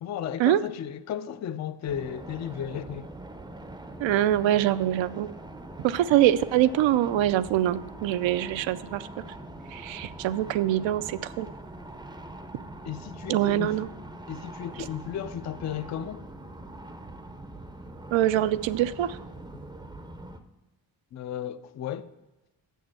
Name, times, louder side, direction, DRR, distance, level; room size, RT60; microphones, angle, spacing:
voice 1, 0.0-3.1 12.8-13.7 14.3-16.2 21.1-22.1, left 9 dB, 40° left, 0.4 m, -34 dB
sound 1, 1.9-20.4, right 1 dB, 10° right, 0.5 m, -43 dB
voice 2, 4.0-5.3 5.8-9.1 9.7-11.5 13.3-13.9 18.1-19.2, right 12 dB, 75° right, 0.6 m, -24 dB
7.0 x 6.4 x 7.8 m
cardioid pair, 150°, 46 cm